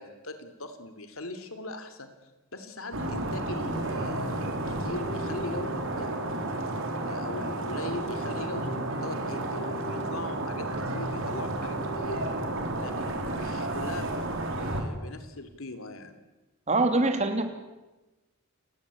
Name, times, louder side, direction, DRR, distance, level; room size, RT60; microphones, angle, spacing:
voice 1, 0.0-2.1 2.5-6.5 7.0-12.2 12.7-16.2, left 2 dB, 75° left, 9 dB, 3.0 m, -40 dB
sound 1, 2.9-14.8, right 2 dB, 65° right, 3.9 m, -32 dB
sound 2, 3.5-12.5, equal, 55° left, 4.9 m, -41 dB
voice 2, 16.7-17.4, right 2 dB, 35° right, 7 dB, 3.0 m, -23 dB
30.0 x 19.0 x 8.5 m, 1.1 s
head